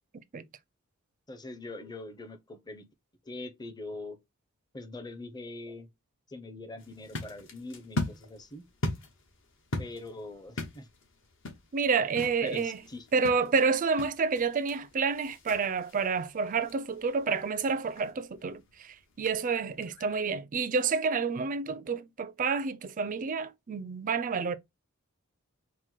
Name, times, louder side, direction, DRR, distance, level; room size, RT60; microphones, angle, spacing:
voice 1, 1.3-2.9 3.2-4.2 4.7-5.9 6.3-8.6 9.8-10.9 12.4-13.1, left 2 dB, 20° left, 0.6 m, -42 dB
sound 1, 6.8-20.3, left 1 dB, 60° left, 1.1 m, -41 dB
voice 2, 11.7-12.8 13.1-24.6, right 5 dB, 40° right, 0.4 m, -29 dB
4.4 x 2.1 x 4.3 m
head